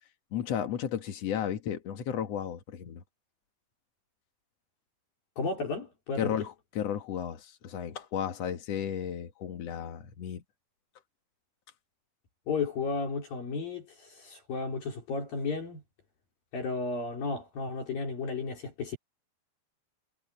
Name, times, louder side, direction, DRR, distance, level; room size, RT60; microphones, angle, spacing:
voice 1, 0.3-3.0 6.2-10.4, left 9 dB, 70° left, 1.5 m, -34 dB
voice 2, 5.4-6.4 12.5-15.8 16.5-19.0, left 4 dB, 50° left, 5.4 m, -33 dB
omnidirectional pair, 5.5 m